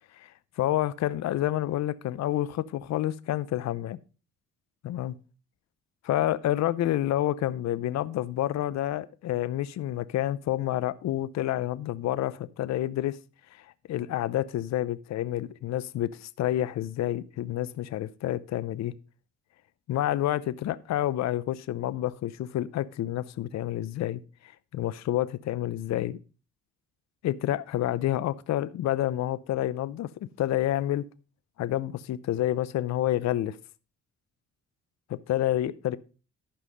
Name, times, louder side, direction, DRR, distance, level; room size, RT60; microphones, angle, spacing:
voice 1, 0.6-4.0 4.8-5.1 6.0-13.2 13.5-18.9 19.9-26.2 27.2-30.1 30.4-31.0 31.6-33.6 35.1-36.0, left 13 dB, 65° left, 0.6 m, -29 dB
11.5 x 5.5 x 5.3 m
cardioid pair, 90°, 30 cm